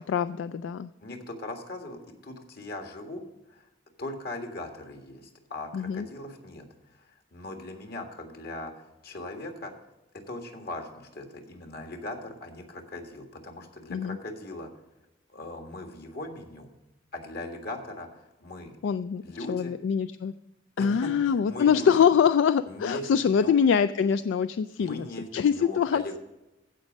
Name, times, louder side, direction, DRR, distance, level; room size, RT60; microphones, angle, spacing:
voice 1, 0.0-0.9 5.7-6.0 13.9-14.2 18.8-19.2 19.5-20.3 20.8-25.1 25.3-26.2, left 7 dB, 80° left, 13 dB, 0.3 m, -24 dB
voice 2, 1.0-3.2 3.5-3.7 4.0-9.7 10.1-14.7 15.3-16.7 17.1-18.8 19.2-19.8 20.8-21.9 22.7-23.6 24.8-26.2, left 2 dB, 55° left, 4 dB, 1.7 m, -39 dB
15.0 x 5.3 x 5.2 m, 0.98 s
head